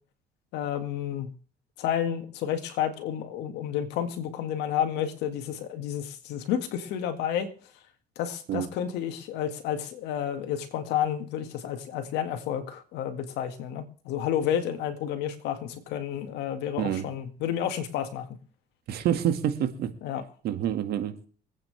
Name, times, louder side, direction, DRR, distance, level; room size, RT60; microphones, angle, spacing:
voice 1, 0.5-1.3 1.8-7.5 8.2-18.4 20.0-20.2, left 9 dB, 90° left, 7 dB, 2.0 m, -30 dB
voice 2, 18.9-19.9 20.4-21.1, right 10 dB, 70° right, 8 dB, 1.9 m, -27 dB
24.5 x 8.8 x 3.4 m, 0.42 s
cardioid pair, 110°, 17 cm